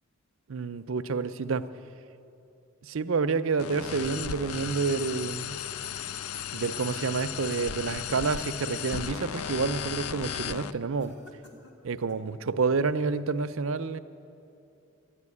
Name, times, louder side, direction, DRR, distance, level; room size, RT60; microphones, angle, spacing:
voice 1, 0.5-1.7 2.9-5.6 6.5-11.2 11.8-14.0, right 4 dB, 70° right, 11 dB, 0.5 m, -29 dB
sound 1, 3.6-10.7, left 8 dB, 80° left, 0.4 m, -35 dB
sound 2, 6.6-7.6 8.0-9.4 9.8-10.1 11.0-12.3, left 1 dB, 50° left, 1.8 m, -57 dB
13.0 x 10.0 x 9.8 m, 2.7 s
head